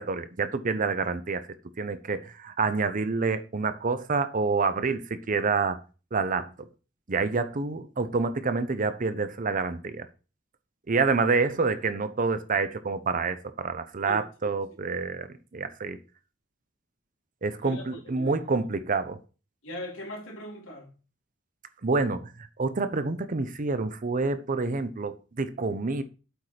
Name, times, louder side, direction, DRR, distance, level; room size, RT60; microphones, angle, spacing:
voice 1, 0.0-1.4 1.8-5.8 6.1-6.7 7.1-10.1 10.9-16.0 17.4-19.2 21.8-22.3 22.6-26.0, right 4 dB, 45° right, 0.7 m, -28 dB
voice 2, 14.1-14.5 17.6-18.6 19.6-20.9, equal, 85° left, 2.6 m, -40 dB
8.0 x 4.4 x 5.0 m
head